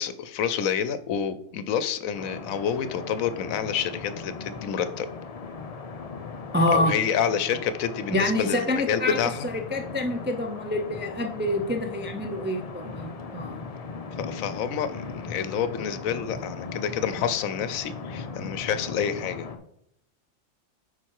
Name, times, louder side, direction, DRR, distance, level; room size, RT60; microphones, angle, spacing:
voice 1, 0.0-5.1 6.7-9.5 14.2-19.5, left 8 dB, 75° left, 12 dB, 1.0 m, -28 dB
sound 1, 2.1-19.6, left 4 dB, 40° left, 0.6 m, -38 dB
voice 2, 6.5-6.9 8.1-9.2 9.4-13.6, left 1 dB, 15° right, 3 dB, 0.3 m, -27 dB
8.8 x 4.5 x 4.7 m, 0.75 s
omnidirectional pair, 1.5 m